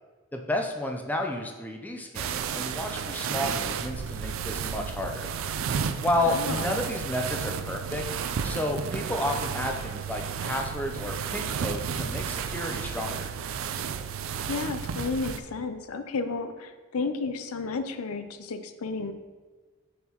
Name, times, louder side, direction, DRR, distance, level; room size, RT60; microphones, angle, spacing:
voice 1, 0.3-5.3 6.0-8.0 8.4-13.3, left 1 dB, 10° left, 2 dB, 0.4 m, -31 dB
sound 1, 2.1-15.4, right 7 dB, 65° right, 0.4 m, -32 dB
voice 2, 6.3-6.8 14.5-19.1, left 4 dB, 85° left, 9 dB, 0.5 m, -32 dB
6.8 x 6.5 x 2.9 m, 1.4 s
head